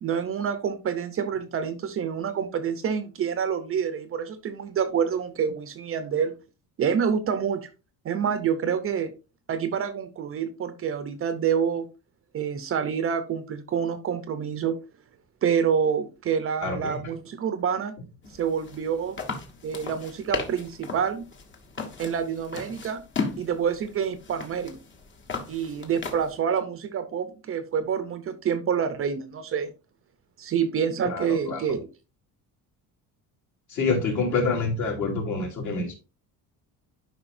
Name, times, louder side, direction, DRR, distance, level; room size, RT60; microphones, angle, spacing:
voice 1, 0.0-6.4 6.8-7.7 8.0-9.1 9.5-11.9 12.3-14.8 15.4-17.9 18.3-19.2 19.6-21.3 22.0-23.0 23.4-24.8 25.5-29.7 30.4-31.9, right 7 dB, 35° right, 11 dB, 0.7 m, -27 dB
voice 2, 16.6-17.0 31.0-31.6 33.7-35.9, left 3 dB, 50° left, 0 dB, 3.2 m, -27 dB
sound 1, 18.2-26.4, left 4 dB, 30° left, 1.3 m, -36 dB
11.0 x 5.2 x 2.6 m, 0.31 s
cardioid pair, 165°, 37 cm